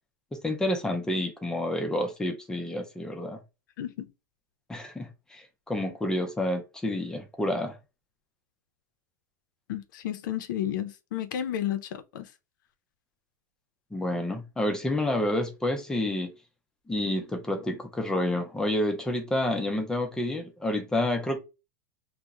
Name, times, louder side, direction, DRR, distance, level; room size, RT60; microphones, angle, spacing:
voice 1, 0.3-3.4 4.7-7.8 13.9-16.3 16.9-21.4, left 1 dB, 5° left, 0.4 m, -29 dB
voice 2, 9.7-12.3, left 11 dB, 80° left, 0.4 m, -32 dB
2.7 x 2.0 x 2.3 m
supercardioid pair, 145°, 10 cm